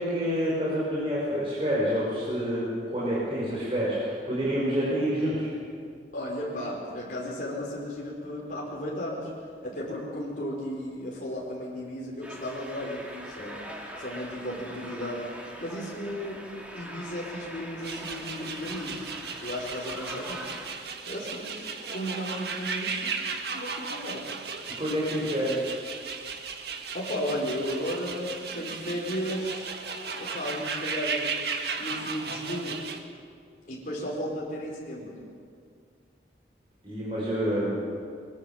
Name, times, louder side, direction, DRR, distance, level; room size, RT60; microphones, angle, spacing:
voice 1, 0.0-5.5 24.8-25.6 36.8-37.7, equal, 30° right, -7 dB, 5.7 m, -28 dB
voice 2, 6.1-9.3 9.6-13.7 14.0-15.2 15.6-16.4 16.7-20.5 21.0-23.2 23.5-24.3 26.9-29.8 30.2-32.8 33.6-35.2, equal, 45° left, -4 dB, 4.9 m, -34 dB
sound 1, 12.2-20.7, equal, 5° right, 2.9 m, -43 dB
sound 2, 17.8-33.0, right 5 dB, 60° right, 1.8 m, -35 dB
22.5 x 22.5 x 7.4 m, 2.2 s
head